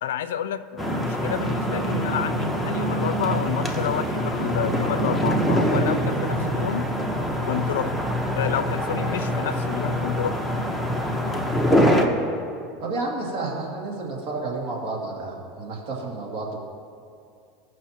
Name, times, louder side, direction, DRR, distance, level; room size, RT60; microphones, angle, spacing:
voice 1, 0.0-6.9 7.4-7.9 8.4-10.4, left 9 dB, 85° left, 13 dB, 0.3 m, -29 dB
sound 1, 0.8-12.1, equal, 5° right, 1.0 m, -24 dB
voice 2, 11.7-12.4 12.8-16.6, right 3 dB, 60° right, -4 dB, 2.3 m, -31 dB
17.5 x 6.1 x 2.9 m, 2.3 s
supercardioid pair, 105°, 0 cm